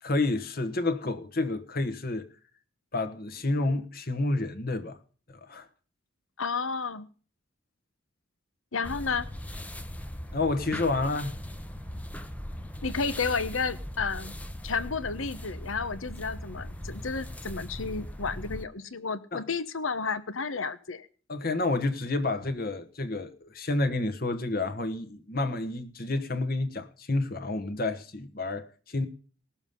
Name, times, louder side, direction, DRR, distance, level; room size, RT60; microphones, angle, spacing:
voice 1, 0.0-2.3 2.9-5.0 5.3-5.7 10.3-11.3 19.3-19.4 21.3-29.1, left 2 dB, 45° left, 1.3 m, -29 dB
voice 2, 6.4-7.1 8.7-9.3 12.8-14.4 14.6-21.1, left 5 dB, 75° left, 1.2 m, -32 dB
sound 1, 8.8-18.6, equal, 5° left, 0.8 m, -39 dB
19.0 x 7.1 x 5.4 m
head